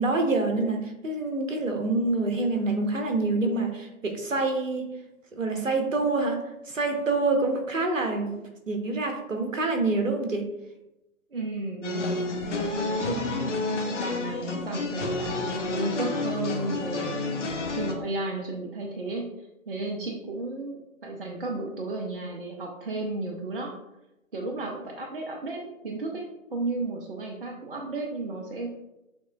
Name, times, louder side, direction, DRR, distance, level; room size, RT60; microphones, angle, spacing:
voice 1, 0.0-4.9 5.3-8.4 8.7-10.5, right 3 dB, 65° right, 4 dB, 1.0 m, -26 dB
voice 2, 11.3-12.2 12.7-13.7 14.0-17.3 17.7-19.3 19.7-23.7 24.3-26.2 26.5-28.7, right 2 dB, 40° right, 1 dB, 0.6 m, -33 dB
sound 1, 11.8-17.9, left 3 dB, 55° left, 0.9 m, -30 dB
7.0 x 3.0 x 2.3 m, 0.94 s
figure-of-eight pair, 135°, 42 cm